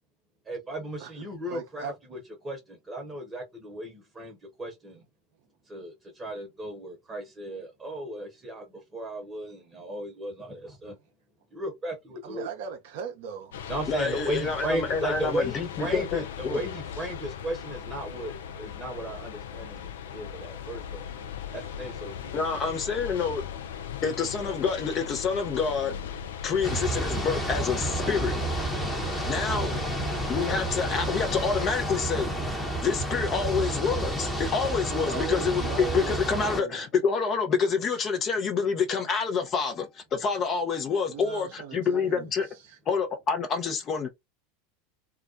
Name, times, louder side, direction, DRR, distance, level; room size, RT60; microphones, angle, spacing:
voice 1, 0.5-2.2 2.4-5.0 5.7-8.7 8.9-10.9 11.5-12.5 13.7-21.1 21.5-22.3 32.5-32.6, right 1 dB, 20° right, 0.9 m, -35 dB
voice 2, 1.5-2.0 12.2-13.5 29.3-29.9 35.0-36.8 41.1-42.8, right 7 dB, 60° right, 0.4 m, -39 dB
sound 1, 13.5-31.6, left 8 dB, 70° left, 0.3 m, -38 dB
voice 3, 13.9-16.6 22.3-23.4 24.0-25.9 26.4-28.5 28.8-29.0 29.2-29.7 30.3-32.3 32.8-42.5 42.9-44.1, left 5 dB, 35° left, 0.6 m, -27 dB
sound 2, 26.6-36.6, right 1 dB, 5° left, 0.9 m, -30 dB
2.3 x 2.1 x 2.5 m
hypercardioid pair, 85°, 0 cm